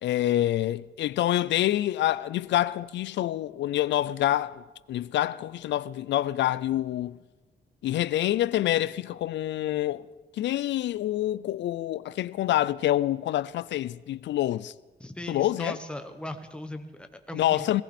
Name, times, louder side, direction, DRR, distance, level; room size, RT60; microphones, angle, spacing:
voice 1, 0.0-7.2 7.8-10.1 10.4-14.7 15.3-15.8 17.3-17.8, left 13 dB, 85° left, 0.4 m, -27 dB
voice 2, 15.0-17.7, left 1 dB, 5° left, 1.0 m, -38 dB
18.5 x 18.5 x 4.3 m
wide cardioid pair, 165°, 18 cm